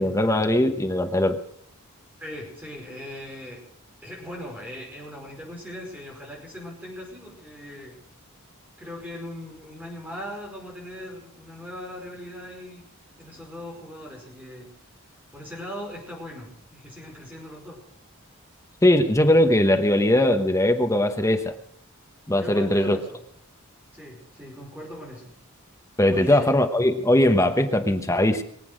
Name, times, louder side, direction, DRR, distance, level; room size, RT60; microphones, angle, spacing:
voice 1, 0.0-1.4 18.8-21.5 22.3-23.0 26.0-28.4, left 1 dB, 15° left, 6 dB, 1.0 m, -20 dB
voice 2, 2.2-3.6 4.0-8.0 8.8-12.8 13.2-14.7 15.3-17.8 22.3-23.2 23.9-25.3 26.1-26.5, equal, 5° right, -2 dB, 5.2 m, -39 dB
23.0 x 8.4 x 6.4 m, 0.65 s
head